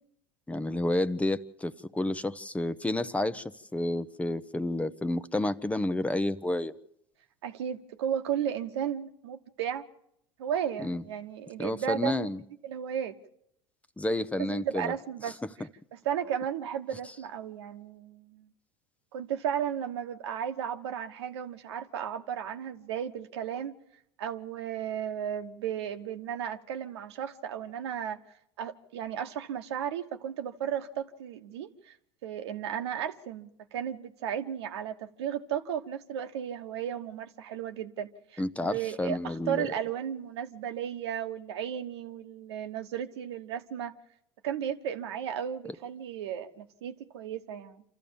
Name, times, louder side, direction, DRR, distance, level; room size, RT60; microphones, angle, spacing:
voice 1, 0.5-3.4 3.7-6.7 10.8-11.0 11.6-12.4 14.0-14.9 38.4-39.7, left 1 dB, 10° left, 0.8 m, -30 dB
voice 2, 7.4-9.8 10.4-12.3 12.6-13.1 14.4-15.4 15.9-18.5 19.1-23.8 24.2-28.2 28.6-31.9 32.2-43.9 44.4-47.8, right 9 dB, 90° right, 1.2 m, -34 dB
26.5 x 14.0 x 7.1 m
supercardioid pair, 100°, 14 cm